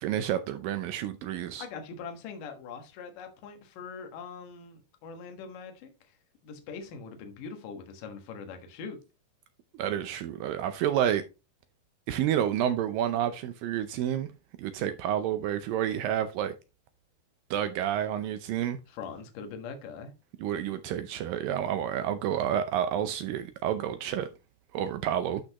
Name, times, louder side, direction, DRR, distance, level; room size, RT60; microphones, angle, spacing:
voice 1, 0.0-1.6 9.7-11.2 12.1-14.3 14.6-16.5 17.5-18.8 20.4-24.3 24.7-25.4, right 10 dB, 80° right, 2.0 m, -29 dB
voice 2, 1.6-5.9 6.4-9.0 18.9-20.1, left 5 dB, 60° left, 2.8 m, -42 dB
12.0 x 5.3 x 2.9 m
omnidirectional pair, 4.7 m